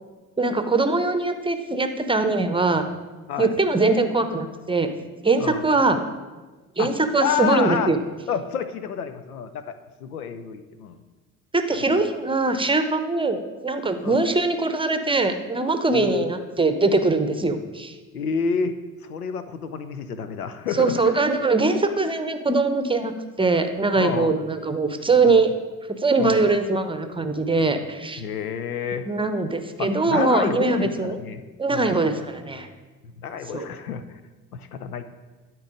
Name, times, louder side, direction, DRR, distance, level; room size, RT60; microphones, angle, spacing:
voice 1, 0.4-2.8 3.4-4.9 5.2-6.0 6.8-8.0 11.5-17.9 20.7-25.5 26.0-28.2 29.1-31.2 31.6-32.7 33.5-33.7, right 3 dB, 10° right, 8 dB, 0.8 m, -22 dB
voice 2, 7.2-7.9 8.3-9.7 10.0-11.0 14.0-14.2 15.9-16.3 18.1-18.8 19.0-21.2 24.0-24.4 25.3-25.4 26.2-26.4 28.2-29.1 29.8-31.4 31.7-32.1 33.2-34.0 34.5-35.1, left 6 dB, 85° left, 11 dB, 0.6 m, -29 dB
11.5 x 4.6 x 5.1 m, 1.3 s
figure-of-eight pair, 55°, 43 cm